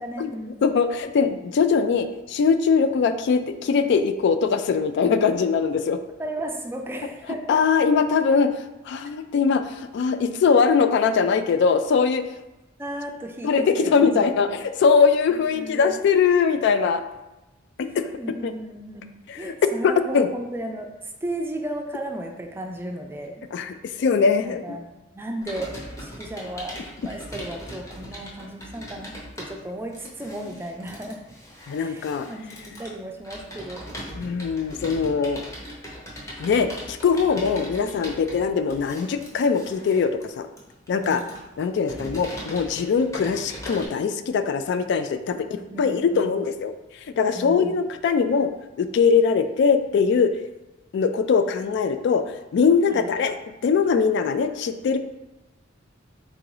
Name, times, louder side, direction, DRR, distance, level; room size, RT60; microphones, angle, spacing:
voice 1, 0.0-0.8 6.2-7.6 12.8-14.5 15.3-16.0 18.2-23.4 24.4-24.9 25.1-31.2 31.8-33.8 41.0-41.3 45.4-46.3 47.3-47.8 52.9-53.1, right 1 dB, 10° right, 2 dB, 0.4 m, -35 dB
voice 2, 0.6-6.0 7.5-8.6 8.9-12.3 13.4-17.0 17.8-18.1 18.4-18.5 19.3-19.5 19.8-20.3 23.5-24.6 31.7-32.3 34.1-35.5 36.4-40.5 40.9-41.2 41.6-46.7 47.2-48.5 48.8-50.3 50.9-53.3 53.6-55.0, left 5 dB, 60° left, 9 dB, 0.3 m, -21 dB
Computer keyboard, 25.4-43.9, equal, 15° left, 0.9 m, -40 dB
3.8 x 2.6 x 4.7 m, 0.99 s
head